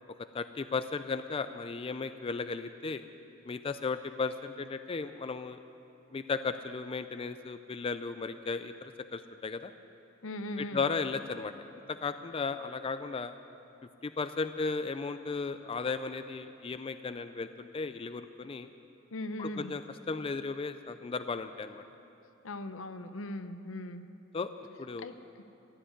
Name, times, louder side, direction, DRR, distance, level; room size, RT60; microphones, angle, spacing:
voice 1, 0.3-3.0 3.4-5.6 6.1-9.7 10.6-11.5 11.9-13.4 14.0-18.7 19.4-19.8 20.1-21.8 24.3-24.5 24.8-25.1, left 4 dB, 30° left, 10 dB, 0.4 m, -35 dB
voice 2, 10.2-10.9 19.1-19.7 22.4-24.1 25.0-25.1, left 1 dB, 80° left, 10 dB, 0.7 m, -39 dB
14.5 x 8.0 x 9.9 m, 2.8 s
head